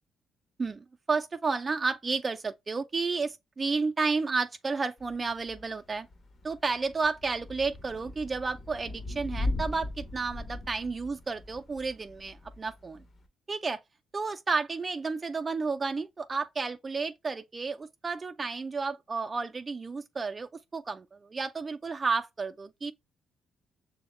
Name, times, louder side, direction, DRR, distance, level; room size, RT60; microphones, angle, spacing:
voice 1, 0.6-6.1 6.4-13.0 13.5-13.8 14.1-22.9, right 4 dB, 30° right, 0.3 m, -32 dB
Thunder / Rain, 5.0-13.3, left 2 dB, 40° left, 0.7 m, -39 dB
6.1 x 2.1 x 3.0 m
cardioid pair, 90°, 0 cm